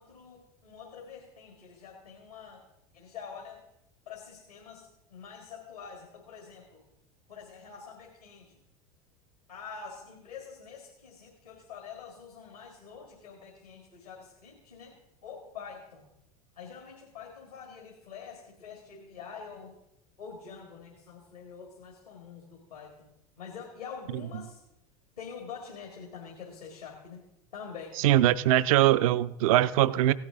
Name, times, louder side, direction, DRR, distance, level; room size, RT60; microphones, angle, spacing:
voice 1, 0.0-2.6 2.9-3.6 4.1-6.8 7.3-8.6 9.5-14.9 15.2-16.1 16.6-19.7 20.2-23.1 23.4-24.6 25.2-27.2 27.5-28.0, left 6 dB, 85° left, 0 dB, 2.0 m, -46 dB
voice 2, 28.0-30.1, right 14 dB, 65° right, 15 dB, 0.5 m, -22 dB
16.5 x 8.9 x 3.7 m, 0.84 s
figure-of-eight pair, 80°, 19 cm